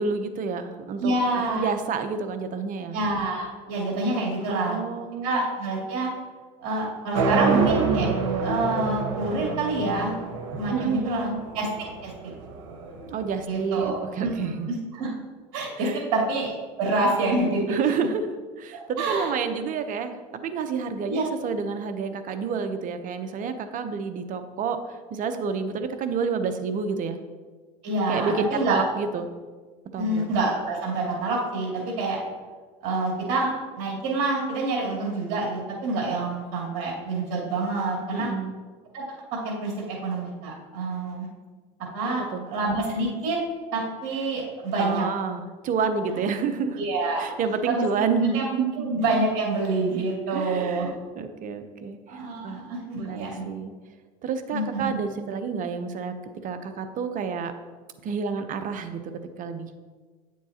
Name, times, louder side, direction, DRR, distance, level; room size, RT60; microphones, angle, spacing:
voice 1, 0.0-1.1 1.5-3.0 4.5-5.4 10.7-11.4 13.1-14.7 15.8-16.0 17.7-27.2 28.1-29.3 29.9-30.2 38.1-38.5 42.3-42.5 44.8-46.8 47.2-48.8 50.3-52.6 53.0-53.7 54.2-56.1 56.4-57.5 58.0-59.1 59.4-59.7, right 5 dB, 50° right, 9 dB, 0.8 m, -29 dB
voice 2, 1.0-1.7 2.9-4.8 5.2-6.1 6.6-8.1 8.4-10.1 10.5-11.3 11.5-12.3 13.5-14.3 14.7-15.1 15.5-17.8 18.7-19.3 21.1-21.2 27.8-28.8 30.0-32.2 32.8-33.5 33.7-38.3 38.9-39.0 39.3-41.3 41.9-43.4 43.7-45.0 46.8-47.3 47.7-48.0 48.3-48.5 48.8-50.9 52.1-53.5 54.5-54.9, right 2 dB, 65° right, -3 dB, 2.6 m, -27 dB
sound 1, 7.1-13.2, right 4 dB, 80° right, 1.3 m, -27 dB
9.0 x 7.4 x 2.9 m, 1.4 s
supercardioid pair, 95°, 17 cm